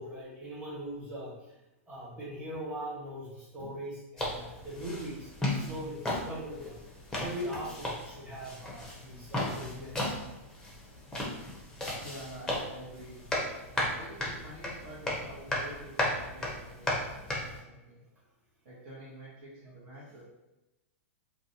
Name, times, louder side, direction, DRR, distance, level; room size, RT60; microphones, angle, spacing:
voice 1, 0.0-1.5 1.9-6.7 7.2-10.2, equal, 20° right, -8 dB, 1.4 m, -41 dB
sound 1, 4.2-17.6, left 1 dB, 10° left, 0.7 m, -35 dB
voice 2, 12.0-13.2 13.7-18.0 18.6-20.2, right 1 dB, 50° right, -8 dB, 1.0 m, -48 dB
2.5 x 2.2 x 2.7 m, 0.99 s
hypercardioid pair, 115°, 8 cm